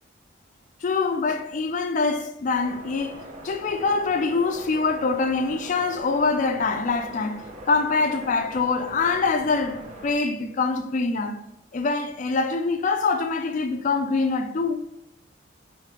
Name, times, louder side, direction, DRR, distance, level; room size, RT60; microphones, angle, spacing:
voice 1, 0.8-11.4 11.7-14.8, left 4 dB, 40° left, 0.3 m, -24 dB
sound 1, 2.6-10.1, right 1 dB, 35° right, 0.5 m, -42 dB
3.3 x 3.1 x 4.8 m
head